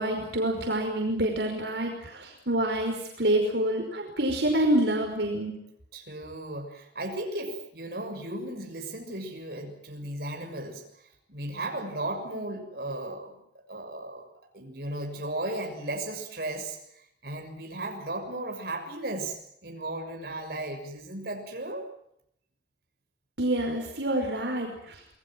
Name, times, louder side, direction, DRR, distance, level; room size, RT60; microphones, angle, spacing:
voice 1, 0.0-5.5 23.4-25.0, right 1 dB, 75° right, 2 dB, 5.4 m, -27 dB
voice 2, 5.9-10.8 11.3-13.3 13.7-14.2 14.5-16.8 17.2-21.9, right 1 dB, 60° right, 3 dB, 6.6 m, -35 dB
27.5 x 20.5 x 7.6 m, 0.75 s
head